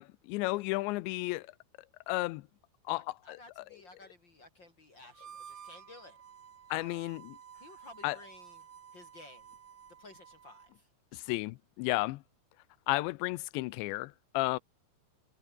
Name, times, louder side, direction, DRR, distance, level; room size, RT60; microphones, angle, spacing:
voice 1, 0.0-1.5 2.1-2.4 2.9-3.6 6.7-7.4 8.0-8.2 11.1-12.2 12.9-14.6, left 21 dB, 85° left, 2.8 m, -33 dB
voice 2, 2.9-6.2 6.7-7.1 7.6-8.6 8.9-9.6 10.0-11.4, left 2 dB, 35° left, 2.0 m, -55 dB
Harmonica, 5.1-10.8, right 8 dB, 90° right, 1.2 m, -53 dB
omnidirectional pair, 5.6 m